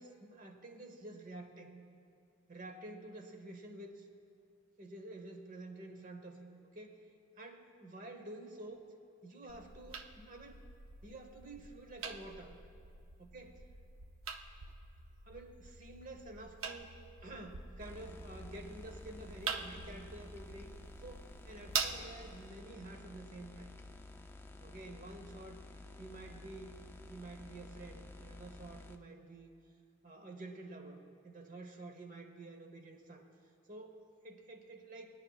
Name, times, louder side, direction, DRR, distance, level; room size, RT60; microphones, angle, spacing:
voice 1, 0.0-1.8 2.5-4.1 4.8-6.4 6.7-7.0 7.4-8.9 9.2-10.5 11.0-12.6 13.2-13.7 15.3-16.9 17.2-20.7 21.0-23.7 24.6-25.6 26.0-26.8 27.0-29.5 30.0-33.3 33.7-35.1, right 2 dB, 40° right, 4 dB, 1.1 m, -50 dB
sound 1, 9.5-22.5, right 5 dB, 80° right, 0.6 m, -45 dB
sound 2, 17.8-29.0, left 2 dB, 10° left, 0.4 m, -52 dB
20.5 x 10.5 x 2.3 m, 2.5 s
head